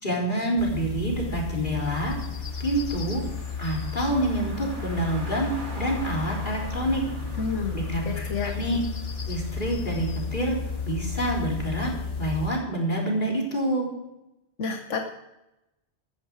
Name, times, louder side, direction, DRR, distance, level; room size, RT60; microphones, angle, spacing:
voice 1, 0.0-2.2 2.6-3.2 3.6-7.0 7.7-8.3 8.5-8.8 9.3-10.6 10.9-11.9 12.2-13.9, right 1 dB, 40° left, -2 dB, 4.2 m, -27 dB
sound 1, 0.6-12.5, left 5 dB, 55° left, 1.4 m, -33 dB
Car, 1.8-11.3, right 1 dB, 40° right, 2.8 m, -44 dB
voice 2, 7.4-7.7 8.0-8.5 14.6-15.0, left 5 dB, 85° left, 4 dB, 1.5 m, -29 dB
15.5 x 14.0 x 4.8 m, 0.93 s
omnidirectional pair, 1.2 m